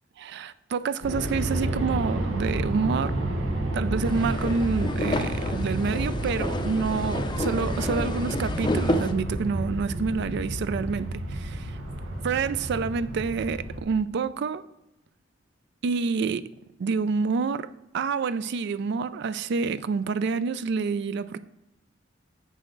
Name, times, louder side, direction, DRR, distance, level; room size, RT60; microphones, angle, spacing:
voice 1, 0.2-3.2 3.7-11.8 12.2-14.6 15.8-16.5 16.8-17.7 17.9-21.4, right 5 dB, 60° right, 0.3 m, -28 dB
Aircraft, 1.0-13.8, right 1 dB, 85° right, 1.2 m, -30 dB
sound 1, 4.0-9.1, left 1 dB, 25° left, 0.5 m, -31 dB
7.7 x 6.4 x 3.8 m
head